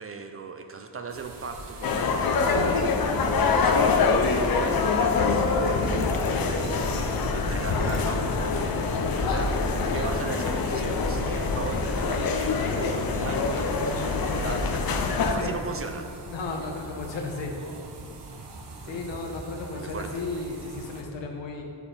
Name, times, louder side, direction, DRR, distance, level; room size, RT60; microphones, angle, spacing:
voice 1, 0.0-14.9 15.2-16.1 18.8-19.5 19.8-20.3, right 4 dB, 35° right, 5 dB, 0.4 m, -38 dB
sound 1, 1.1-21.0, right 2 dB, 65° right, 0.9 m, -39 dB
sound 2, 1.8-15.4, left 4 dB, 55° left, 0.6 m, -25 dB
voice 2, 16.3-17.5 18.8-21.6, left 3 dB, 80° left, 1 dB, 1.1 m, -34 dB
6.7 x 4.8 x 5.1 m, 2.4 s
wide cardioid pair, 140°, 43 cm